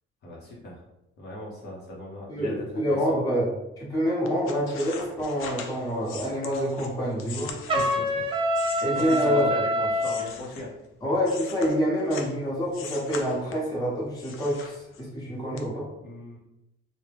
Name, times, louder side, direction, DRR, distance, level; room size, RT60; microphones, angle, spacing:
voice 1, 0.2-0.8 1.2-3.0 7.7-8.2 8.9-10.7 16.0-16.4, left 1 dB, 55° left, -4 dB, 0.8 m, -38 dB
voice 2, 2.3-3.5 3.8-7.5 8.8-9.5 11.0-15.9, equal, 15° left, -5 dB, 1.0 m, -27 dB
sound 1, 4.2-9.5 9.9-12.4 12.7-13.8 14.2-15.2 15.6-15.7, left 6 dB, 85° left, 0.5 m, -41 dB
Trumpet, 7.7-10.2, equal, 25° right, 0.4 m, -25 dB
3.5 x 2.2 x 3.3 m, 0.91 s
cardioid pair, 155°, 21 cm